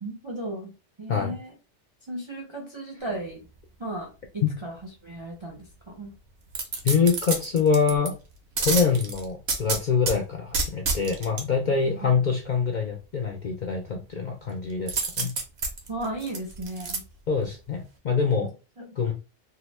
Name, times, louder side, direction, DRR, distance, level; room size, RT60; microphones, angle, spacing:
voice 1, 0.0-0.7 1.0-1.5 2.1-3.5 3.8-4.8 5.0-6.2 11.8-12.1 15.9-17.0 18.3-18.5 18.8-19.1, right 1 dB, 45° right, -2 dB, 0.4 m, -35 dB
sound 1, 6.5-8.1 8.6-10.2 10.5-11.4 14.9-17.0 17.4-17.5, right 4 dB, 60° right, 0.9 m, -28 dB
voice 2, 6.8-8.1 8.6-15.3 17.3-18.5 19.0-19.1, left 5 dB, 60° left, 1 dB, 0.5 m, -25 dB
2.8 x 2.0 x 3.0 m, 0.31 s
omnidirectional pair, 1.2 m